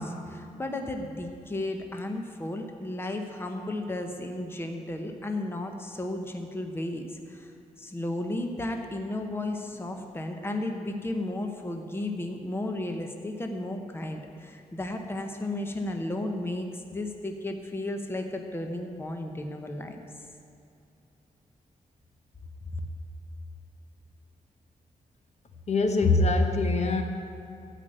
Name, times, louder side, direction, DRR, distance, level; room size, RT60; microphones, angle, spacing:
voice 1, 0.0-7.5 7.8-20.0 22.7-22.8, left 1 dB, 15° left, 4 dB, 0.9 m, -34 dB
voice 2, 25.7-27.0, left 3 dB, 55° left, 5 dB, 1.0 m, -23 dB
13.0 x 5.1 x 8.9 m, 2.7 s
wide cardioid pair, 115°, 14 cm